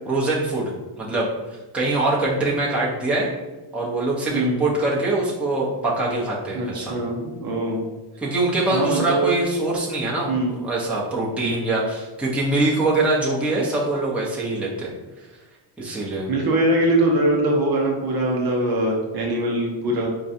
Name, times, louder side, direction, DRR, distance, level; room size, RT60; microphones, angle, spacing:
voice 1, 0.1-1.3 1.7-3.3 3.7-7.0 8.2-14.9 15.8-16.3, right 2 dB, ahead, -6 dB, 0.8 m, -23 dB
voice 2, 6.5-7.8 8.7-9.3 10.3-10.6 11.4-11.7 16.3-20.1, right 1 dB, 45° right, -1 dB, 0.7 m, -22 dB
4.7 x 2.3 x 2.7 m, 1.1 s
cardioid pair, 115°, 49 cm